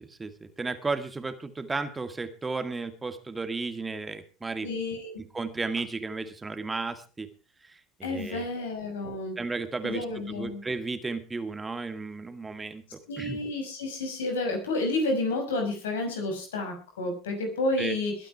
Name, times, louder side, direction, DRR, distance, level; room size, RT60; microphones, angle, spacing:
voice 1, 0.0-4.7 5.3-7.3 7.6-8.6 9.4-13.4 17.8-18.0, right 3 dB, 20° right, 9 dB, 2.1 m, -34 dB
voice 2, 4.6-5.2 8.0-9.4 9.8-10.6 13.1-18.2, left 2 dB, 85° left, 4 dB, 5.8 m, -30 dB
21.0 x 9.1 x 4.7 m, 0.34 s
hypercardioid pair, 75°, 0 cm